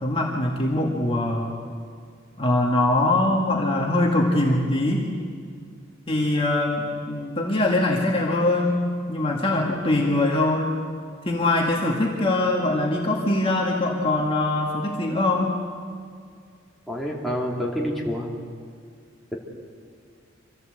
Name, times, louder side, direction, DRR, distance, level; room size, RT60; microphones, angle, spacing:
voice 1, 0.0-1.5 2.4-5.0 6.1-8.8 9.1-10.7 11.3-15.5, left 2 dB, 30° left, -2 dB, 2.1 m, -22 dB
voice 2, 16.9-18.3, equal, ahead, -4 dB, 3.0 m, -27 dB
26.0 x 15.5 x 8.0 m, 2.2 s
head